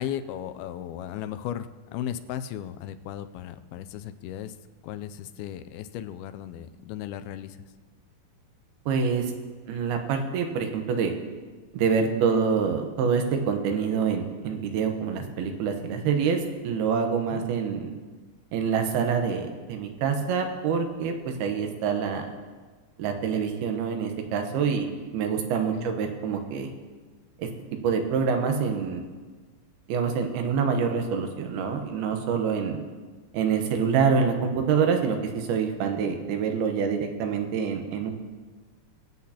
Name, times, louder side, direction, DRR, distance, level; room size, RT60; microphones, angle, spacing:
voice 1, 0.0-4.6 4.8-7.6 17.3-17.4 25.8-25.9, left 10 dB, 85° left, 11 dB, 2.4 m, -36 dB
voice 2, 8.9-9.3 9.7-11.1 11.7-17.9 18.5-22.3 23.0-24.9 25.1-26.7 27.4-27.5 27.8-29.0 29.9-32.8 33.3-38.1, right 6 dB, 85° right, 5 dB, 3.0 m, -26 dB
22.5 x 8.4 x 2.9 m, 1.4 s
omnidirectional pair, 4.3 m